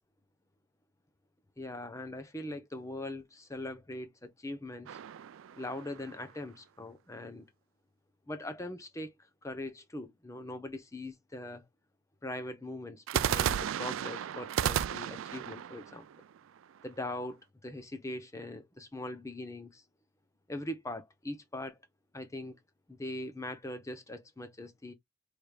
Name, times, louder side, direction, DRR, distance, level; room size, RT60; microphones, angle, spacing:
voice 1, 1.6-5.0 5.5-7.5 8.3-9.1 9.4-11.6 12.2-16.1 16.8-19.8 20.5-21.8 22.1-22.6 22.9-24.9, left 1 dB, 15° left, 0.6 m, -41 dB
sound 1, 4.9-6.3 13.1-17.0, right 9 dB, 75° right, 0.3 m, -34 dB
4.9 x 3.3 x 2.2 m
head